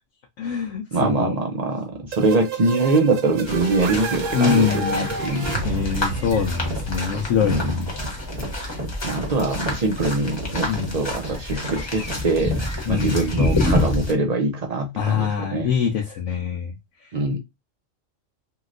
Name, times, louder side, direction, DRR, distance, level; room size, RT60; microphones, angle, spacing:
voice 1, 0.4-1.3 4.3-5.1 5.6-7.9 10.7-11.0 12.9-13.2 15.0-16.7, left 7 dB, 75° left, 0.9 m, -24 dB
voice 2, 0.9-5.6 7.4-7.7 9.0-10.7 10.9-12.5 12.9-15.7 17.1-17.4, right 3 dB, 55° right, 0.4 m, -23 dB
sound 1, 2.1-7.8, right 4 dB, 80° right, 1.0 m, -30 dB
sound 2, 3.5-14.1, left 2 dB, 25° left, 0.8 m, -28 dB
sound 3, 6.3-12.8, right 2 dB, 40° right, 1.1 m, -34 dB
3.0 x 2.8 x 2.4 m
omnidirectional pair, 1.3 m